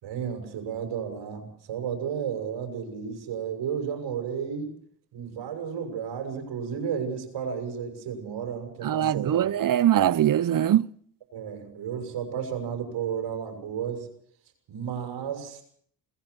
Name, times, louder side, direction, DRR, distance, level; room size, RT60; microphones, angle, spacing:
voice 1, 0.0-4.7 5.1-9.5 11.3-14.1 14.7-15.6, right 7 dB, 75° right, 6.7 m, -33 dB
voice 2, 8.8-10.9, right 11 dB, 50° right, 0.9 m, -22 dB
21.5 x 20.0 x 6.4 m
supercardioid pair, 55°, 44 cm